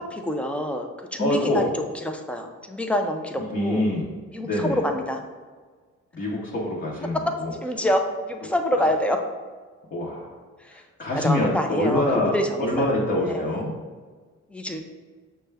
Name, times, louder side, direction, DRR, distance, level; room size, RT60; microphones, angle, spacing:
voice 1, 0.0-1.7 2.0-3.9 4.3-5.2 7.6-9.2 11.1-13.0 13.3-13.6 14.5-14.8, equal, 5° left, 4 dB, 0.4 m, -26 dB
voice 2, 1.2-1.7 3.5-4.0 4.4-4.8 6.1-7.5 9.9-10.3 11.0-13.7, left 1 dB, 35° left, -4 dB, 0.8 m, -25 dB
6.0 x 2.2 x 3.3 m, 1.5 s
cardioid pair, 90°, 30 cm